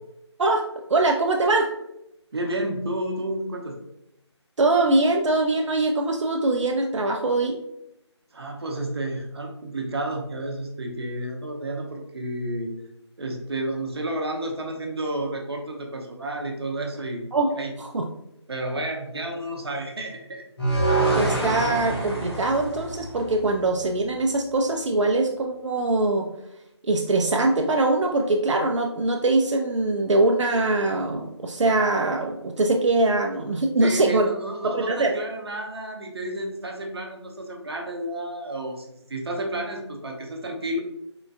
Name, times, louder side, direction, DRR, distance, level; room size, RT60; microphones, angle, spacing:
voice 1, 0.9-1.7 4.6-7.6 17.3-18.1 21.1-26.3 26.8-34.3 34.6-35.2, right 2 dB, 85° right, 1 dB, 0.4 m, -22 dB
voice 2, 2.3-3.8 8.3-12.7 13.2-17.2 17.5-17.7 18.5-20.5 33.8-40.8, right 1 dB, 60° right, 2 dB, 0.7 m, -31 dB
sound 1, 20.6-23.8, right 2 dB, 55° left, 1.1 m, -26 dB
3.7 x 2.2 x 2.5 m, 0.85 s
figure-of-eight pair, 165°, 15 cm